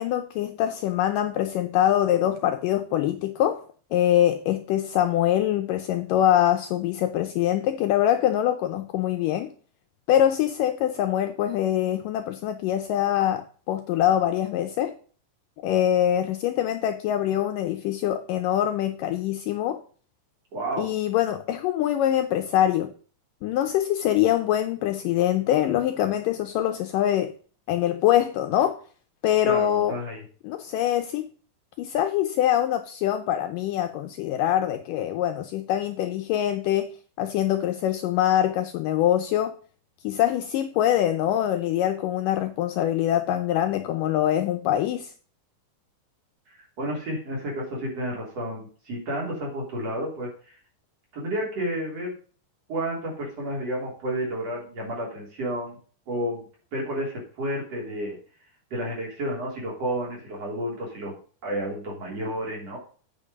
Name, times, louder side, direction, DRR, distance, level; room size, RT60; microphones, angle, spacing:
voice 1, 0.0-3.6 3.9-9.5 10.1-14.9 15.6-19.8 20.8-22.9 23.4-27.3 27.7-28.8 29.2-30.0 30.4-31.3 31.8-36.9 37.2-39.5 40.0-45.1, left 11 dB, 80° left, 2.0 m, -24 dB
voice 2, 20.5-20.9 29.4-30.2 46.8-50.6 51.1-52.2 52.7-55.8 56.1-56.4 56.7-58.2 58.7-61.1 61.4-62.8, equal, 45° right, 4.1 m, -31 dB
8.8 x 5.8 x 5.1 m
omnidirectional pair, 4.4 m